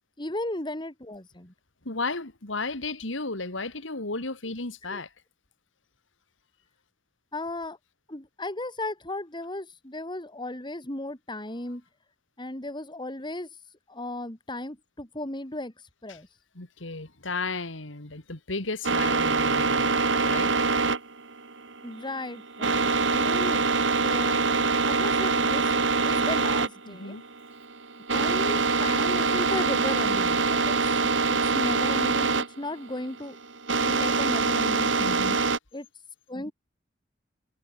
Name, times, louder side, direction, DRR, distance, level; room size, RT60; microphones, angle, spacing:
voice 1, 0.2-1.5 4.9-5.0 7.3-7.8 8.1-11.8 12.4-13.5 13.9-15.7 16.0-16.3 21.8-23.6 24.0-27.2 28.1-31.0 31.3-33.4 33.8-35.2 35.7-35.9 36.3-36.5, left 1 dB, 25° left, 3.2 m, -35 dB
voice 2, 1.8-5.1 16.1-16.2 16.5-19.9 20.2-20.5 26.9-27.2 35.0-35.4, left 3 dB, 90° left, 2.8 m, -34 dB
sound 1, 18.8-35.6, right 4 dB, 70° right, 2.8 m, -24 dB
head